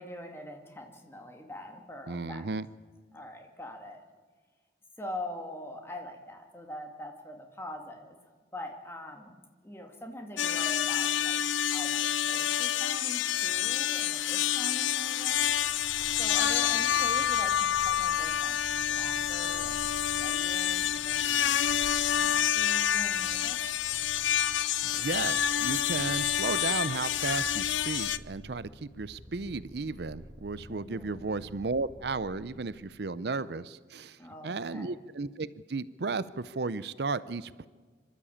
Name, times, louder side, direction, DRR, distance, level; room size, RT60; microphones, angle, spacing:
voice 1, 0.0-2.5 3.1-4.0 5.0-8.2 8.5-15.4 16.2-18.6 18.8-19.9 20.2-23.6 30.7-31.3 34.2-34.9, left 1 dB, 15° left, 3 dB, 2.2 m, -43 dB
voice 2, 2.1-2.7 24.8-37.7, right 3 dB, 60° right, 17 dB, 0.6 m, -34 dB
sound 1, 10.4-28.2, left 10 dB, 90° left, 0.6 m, -28 dB
Purr, 15.2-32.9, equal, 25° right, 2.9 m, -51 dB
sound 2, 22.2-28.9, left 1 dB, 30° left, 7.1 m, -59 dB
26.0 x 12.5 x 8.6 m, 1.5 s
head